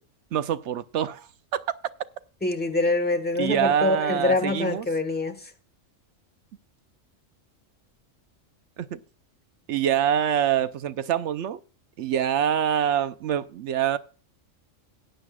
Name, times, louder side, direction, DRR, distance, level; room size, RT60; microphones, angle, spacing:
voice 1, 0.3-1.6 3.4-4.9 8.8-9.0 9.7-11.6 12.0-14.0, right 9 dB, 70° right, 0.9 m, -25 dB
voice 2, 2.4-5.5, left 2 dB, 10° left, 1.1 m, -25 dB
18.0 x 9.0 x 2.3 m
omnidirectional pair, 1.3 m